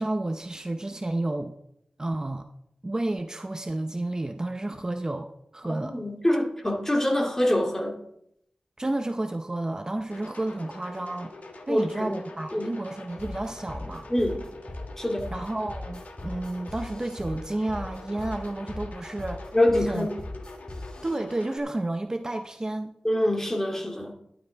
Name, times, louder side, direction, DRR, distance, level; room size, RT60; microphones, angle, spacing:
voice 1, 0.0-1.5 2.0-2.5 2.8-5.3 5.5-6.0 8.8-11.3 11.7-14.1 15.3-19.5 19.8-20.1 21.0-22.9, right 2 dB, 25° right, 7 dB, 0.7 m, -31 dB
voice 2, 5.6-7.9 11.7-12.2 12.5-12.8 14.1-14.4 15.0-15.3 19.5-20.1 23.0-24.1, left 1 dB, 15° left, 1 dB, 2.3 m, -25 dB
sound 1, 10.1-21.6, left 2 dB, 85° left, 1.7 m, -45 dB
sound 2, 13.2-21.2, left 2 dB, 30° left, 1.7 m, -39 dB
12.0 x 11.5 x 3.5 m, 0.76 s
wide cardioid pair, 85°, 3 cm